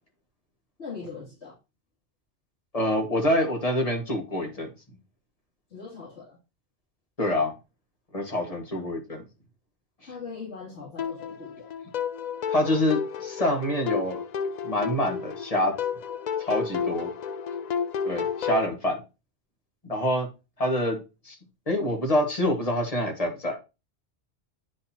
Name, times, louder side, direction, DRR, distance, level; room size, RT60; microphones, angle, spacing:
voice 1, 0.8-1.5 5.7-6.4 8.7-8.9 10.0-11.7, left 5 dB, 75° left, -8 dB, 3.2 m, -40 dB
voice 2, 2.7-4.7 7.2-7.5 8.1-9.2 12.5-14.2 14.6-15.7 16.4-17.1 18.0-19.0 19.8-20.3 20.6-21.0 21.3-21.4 21.7-23.5, left 1 dB, 35° left, 1 dB, 1.8 m, -26 dB
sound 1, 11.0-18.7, left 7 dB, 60° left, 0.4 m, -31 dB
9.5 x 4.2 x 2.9 m, 0.28 s
omnidirectional pair, 1.1 m